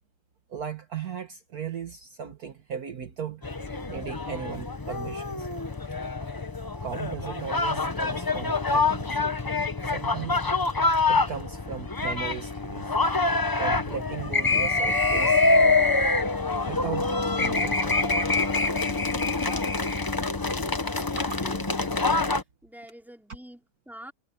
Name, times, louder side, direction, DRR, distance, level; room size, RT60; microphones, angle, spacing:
voice 1, 0.5-3.4 3.9-5.5 6.8-9.2 9.8-10.4 11.1-13.0 13.6-15.4 16.6-18.1 20.9-21.3, right 7 dB, 60° right, 1.8 m, -37 dB
sound 1, 3.4-22.4, left 3 dB, 25° left, 0.4 m, -25 dB
voice 2, 21.2-21.9 22.6-24.1, equal, ahead, 4.6 m, -46 dB
omnidirectional pair, 1.9 m